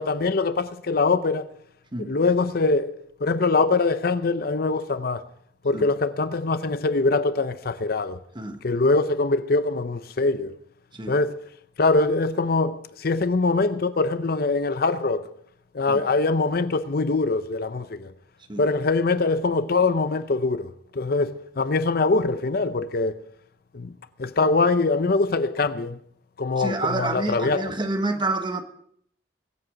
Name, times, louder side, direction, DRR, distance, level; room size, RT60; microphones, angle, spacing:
voice 1, 0.0-1.5 2.0-2.9 3.2-5.2 5.6-8.2 8.6-10.5 11.1-11.4 11.8-15.3 15.7-18.1 18.6-23.2 23.7-23.9 24.2-26.0 26.4-27.7, left 3 dB, 60° left, 0.7 m, -23 dB
voice 2, 26.6-28.6, right 2 dB, 25° right, 1.2 m, -28 dB
22.5 x 8.0 x 5.0 m
head